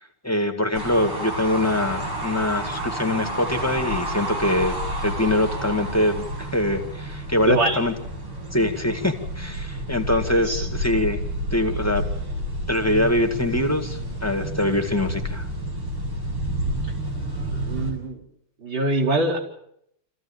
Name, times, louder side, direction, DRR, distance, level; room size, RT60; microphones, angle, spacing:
voice 1, 0.2-4.8 5.0-7.9 8.5-11.2 11.5-12.1 12.7-15.5, left 1 dB, 10° left, 5 dB, 1.7 m, -23 dB
sound 1, 0.7-17.9, right 1 dB, 80° right, 7.9 m, -30 dB
voice 2, 7.5-7.8 10.4-10.7 17.3-18.2 18.6-19.4, right 2 dB, 60° right, -3 dB, 5.2 m, -24 dB
26.0 x 15.5 x 8.8 m, 0.74 s
omnidirectional pair, 2.4 m